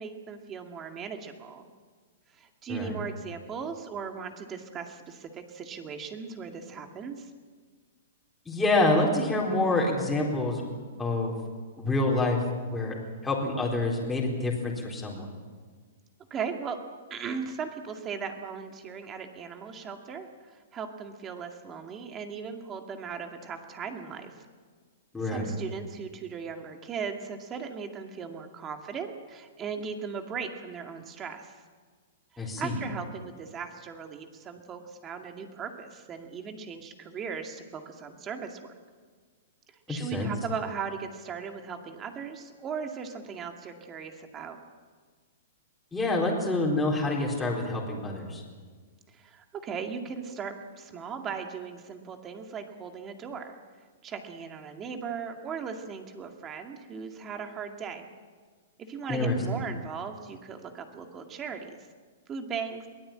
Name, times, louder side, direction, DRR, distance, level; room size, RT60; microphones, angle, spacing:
voice 1, 0.0-1.7 2.3-7.3 16.3-16.8 17.1-24.4 25.2-31.6 32.3-38.7 39.9-44.6 49.1-53.6 54.0-58.1 58.8-61.8 62.3-62.9, right 6 dB, 20° right, 5 dB, 2.2 m, -38 dB
voice 2, 8.5-10.6 11.0-11.4 11.8-12.4 12.7-13.0 13.2-15.3 25.1-25.5 32.4-32.8 39.9-40.3 45.9-48.4 59.1-59.4, left 2 dB, 5° left, -3 dB, 4.1 m, -27 dB
22.5 x 17.5 x 8.9 m, 1.5 s
hypercardioid pair, 150°, 0 cm